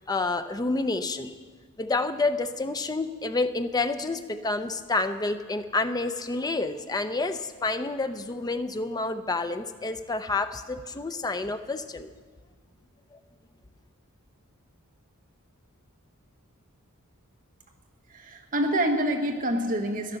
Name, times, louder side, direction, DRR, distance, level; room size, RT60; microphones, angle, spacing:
voice 1, 0.1-1.3 1.8-12.1 13.1-13.2, left 3 dB, 15° left, 9 dB, 0.5 m, -29 dB
voice 2, 18.1-20.2, right 1 dB, 40° right, 4 dB, 1.2 m, -27 dB
13.5 x 11.0 x 6.4 m, 1.5 s
head